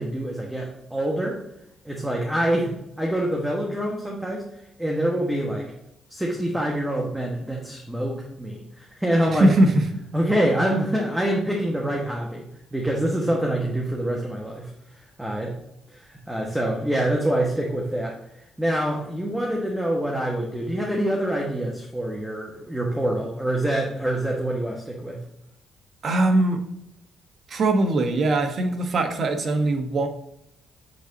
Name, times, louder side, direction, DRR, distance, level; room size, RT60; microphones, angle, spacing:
voice 1, 0.0-1.4 1.8-4.4 4.8-5.7 6.1-9.5 10.1-12.4 12.7-14.7 15.2-15.5 15.9-18.1 18.6-25.2, right 1 dB, 5° right, -1 dB, 1.3 m, -25 dB
voice 2, 9.3-9.8 26.0-26.6 27.5-30.1, right 2 dB, 50° right, 5 dB, 1.2 m, -21 dB
8.0 x 4.1 x 4.0 m, 0.82 s
cardioid pair, 90°, 0 cm